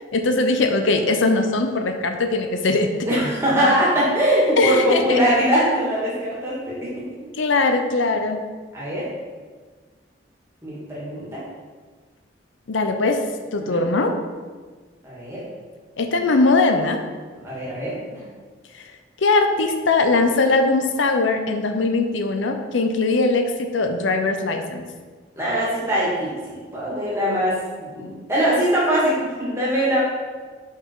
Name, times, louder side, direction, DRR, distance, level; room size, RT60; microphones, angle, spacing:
voice 1, 0.1-2.9 4.6-5.2 7.4-8.4 12.7-13.2 13.5-14.1 16.0-17.0 18.7-18.9 19.2-24.8, left 3 dB, 85° left, 5 dB, 0.6 m, -20 dB
voice 2, 3.1-7.0 8.7-9.1 10.6-11.4 13.7-13.8 15.0-15.4 17.4-18.2 25.4-30.0, equal, 15° right, -7 dB, 2.2 m, -22 dB
5.9 x 5.6 x 4.7 m, 1.5 s
head